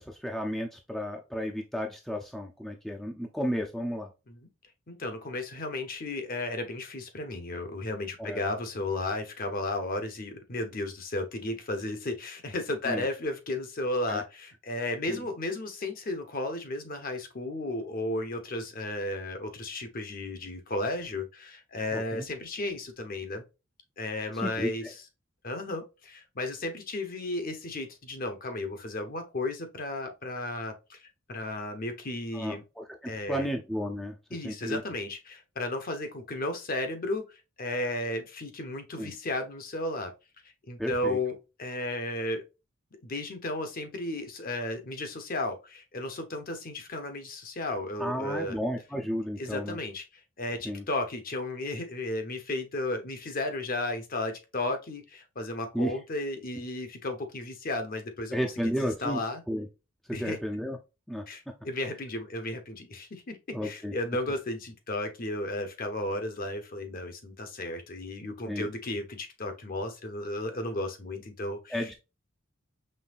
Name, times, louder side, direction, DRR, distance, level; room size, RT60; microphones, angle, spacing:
voice 1, 0.0-4.1 8.2-8.4 12.8-13.1 14.1-14.2 15.1-15.2 21.9-22.3 24.3-24.9 32.3-34.1 34.4-34.8 39.0-39.1 40.8-41.2 48.0-49.8 50.6-50.8 55.7-55.9 58.3-59.2 59.5-59.7 60.1-60.8 61.1-61.2 63.5-63.9 68.5-68.7 71.7-71.9, equal, ahead, 0.5 m, -33 dB
voice 2, 4.9-23.4 24.0-24.9 25.4-32.6 33.1-33.5 34.3-37.2 37.6-40.1 40.7-42.4 43.0-48.6 49.4-50.0 50.4-59.4 60.1-60.4 61.3-71.9, left 2 dB, 40° left, 0.9 m, -34 dB
5.4 x 3.2 x 2.5 m
head